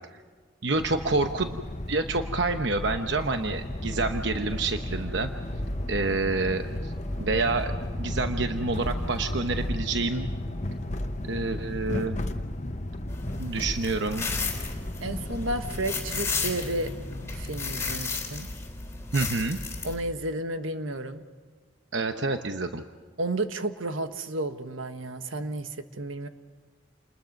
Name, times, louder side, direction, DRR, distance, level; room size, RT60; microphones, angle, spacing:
voice 1, 0.6-1.6 1.9-5.3 5.9-6.9 7.2-7.7 8.0-10.3 11.2-12.2 13.4-14.3 19.1-19.6 21.9-22.8, right 3 dB, 65° right, 6 dB, 0.9 m, -28 dB
sound 1, 0.7-18.0, left 1 dB, 35° left, 1.0 m, -34 dB
Bowed string instrument, 2.4-11.0, equal, 10° right, 7.0 m, -48 dB
sound 2, 13.1-19.9, left 4 dB, 15° left, 3.7 m, -34 dB
voice 2, 15.0-16.9 17.3-18.5 19.8-21.2 23.2-26.3, right 2 dB, 85° right, 8 dB, 1.4 m, -32 dB
29.0 x 20.5 x 5.3 m, 1.5 s
head